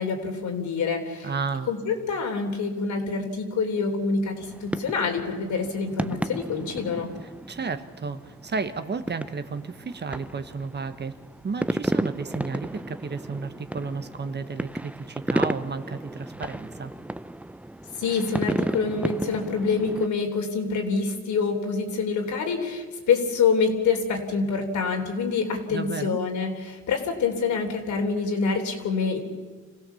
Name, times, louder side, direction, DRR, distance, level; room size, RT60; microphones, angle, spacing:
voice 1, 0.0-1.3 1.7-7.1 18.0-29.2, left 5 dB, 70° left, 3 dB, 3.7 m, -26 dB
voice 2, 1.2-1.7 7.2-11.1 11.4-16.9 25.7-26.2, right 4 dB, 35° right, 10 dB, 1.3 m, -32 dB
sound 1, 4.4-20.1, right 1 dB, 5° right, 0.6 m, -33 dB
26.5 x 16.0 x 7.1 m, 1.4 s
cardioid pair, 90°, 30 cm